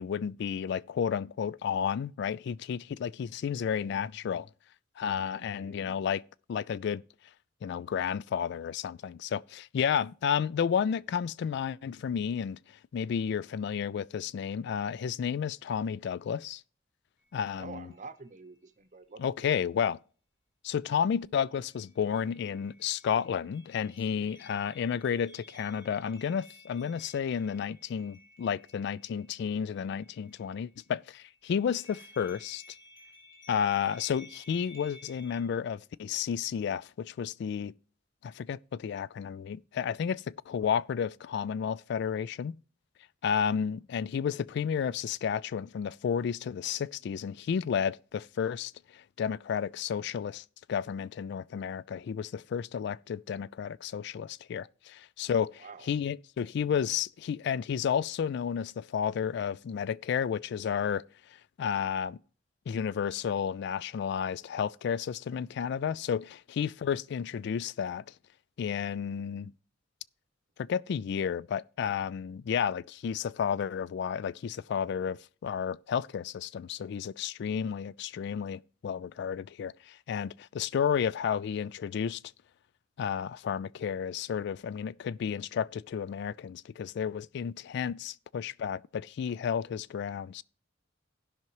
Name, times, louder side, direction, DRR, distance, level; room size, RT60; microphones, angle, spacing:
voice 1, 0.0-4.5 5.0-6.2 6.5-7.0 7.6-12.6 12.9-16.6 17.3-17.9 19.2-20.0 20.6-32.6 33.5-37.7 38.2-42.6 43.2-61.0 61.6-62.2 62.7-68.0 68.6-69.5 70.6-82.2 83.0-90.4, left 7 dB, 65° left, 0.3 m, -32 dB
voice 2, 5.3-5.8 17.5-19.5 55.6-55.9, right 4 dB, 40° right, 0.7 m, -48 dB
sound 1, 17.2-17.3 17.9-18.5 21.7-30.8 31.2-35.4, left 1 dB, 30° left, 3.5 m, -56 dB
17.0 x 5.9 x 3.0 m
head